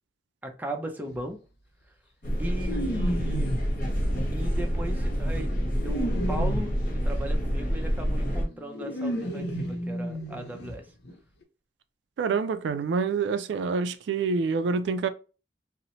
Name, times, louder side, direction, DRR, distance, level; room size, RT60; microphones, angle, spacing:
voice 1, 0.4-1.4 2.4-3.6 4.3-5.6 5.8-10.8, right 1 dB, 10° right, 0.4 m, -37 dB
sound 1, 1.0-1.2 2.6-3.7 4.5-6.8 8.1-8.2 8.5-10.8 11.0-11.1 11.4-11.5, equal, 65° left, 0.6 m, -33 dB
sound 2, 2.2-8.4, equal, 50° left, 1.0 m, -27 dB
voice 2, 12.2-15.1, right 5 dB, 85° right, 0.3 m, -27 dB
2.7 x 2.0 x 2.8 m
head